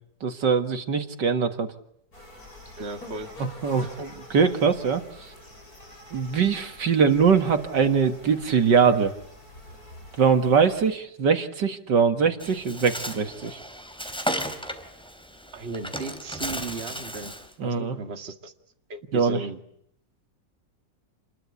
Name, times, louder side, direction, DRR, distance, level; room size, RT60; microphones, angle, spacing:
voice 1, 0.2-1.7 3.6-5.3 6.1-9.1 10.2-13.6 17.6-18.0 19.1-19.4, right 6 dB, 70° right, 7 dB, 2.4 m, -22 dB
sound 1, 2.1-10.9, left 1 dB, 50° left, 8.2 m, -46 dB
voice 2, 2.8-3.3 15.5-17.3 17.6-18.5 18.9-19.6, right 3 dB, 35° right, 6 dB, 2.2 m, -36 dB
Bird, 12.4-17.5, equal, 5° left, 3.5 m, -34 dB
29.0 x 21.5 x 8.4 m, 0.73 s
omnidirectional pair, 2.0 m